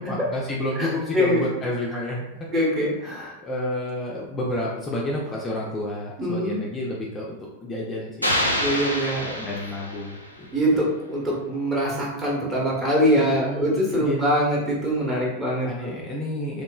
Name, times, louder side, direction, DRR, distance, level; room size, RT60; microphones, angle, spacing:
voice 1, 0.0-2.2 3.1-8.4 9.3-10.2 10.7-10.8 13.2-14.4 15.6-16.6, left 1 dB, 20° left, -3 dB, 0.4 m, -30 dB
voice 2, 2.5-3.3 6.2-6.6 8.6-9.4 10.5-15.9, equal, 20° right, -4 dB, 0.9 m, -23 dB
sound 1, 8.2-10.4, left 1 dB, 90° left, 0.4 m, -26 dB
3.0 x 2.1 x 2.2 m, 0.96 s
figure-of-eight pair, 90°, 0 cm